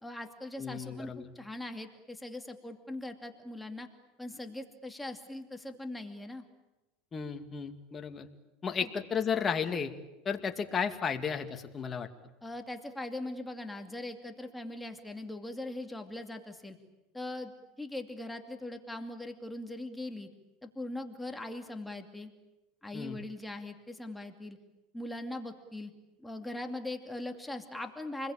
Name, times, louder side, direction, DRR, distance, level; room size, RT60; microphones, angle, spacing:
voice 1, 0.0-3.9 4.2-6.4 8.8-8.9 9.3-9.5 12.4-16.8 17.1-17.5 17.8-20.3 20.6-22.3 22.8-24.6 24.9-25.9 26.2-28.3, left 1 dB, 5° left, 5 dB, 2.5 m, -40 dB
voice 2, 0.6-1.3 7.1-8.3 8.6-9.9 10.2-12.1 22.9-23.2, left 6 dB, 25° left, 6 dB, 2.3 m, -33 dB
29.0 x 21.5 x 8.9 m, 1.0 s
supercardioid pair, 115°, 0 cm